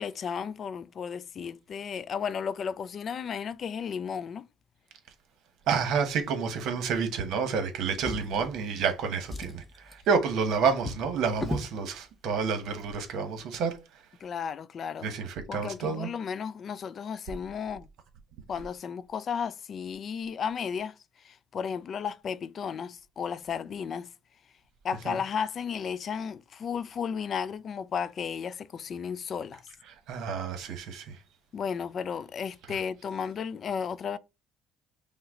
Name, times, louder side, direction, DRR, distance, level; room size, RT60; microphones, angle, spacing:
voice 1, 0.0-4.5 8.1-8.8 14.2-15.1 15.5-17.9 18.5-24.1 24.8-29.6 31.5-34.2, left 7 dB, 45° left, 0.4 m, -34 dB
voice 2, 5.7-13.8 15.0-16.1 25.1-25.2 30.1-31.2, right 5 dB, 70° right, 1.1 m, -29 dB
Drawer open or close, 7.9-8.9 9.2-11.8 12.7-12.8 13.2-13.3, left 1 dB, 15° left, 0.8 m, -38 dB
5.8 x 2.2 x 3.6 m
cardioid pair, 105°, 0 cm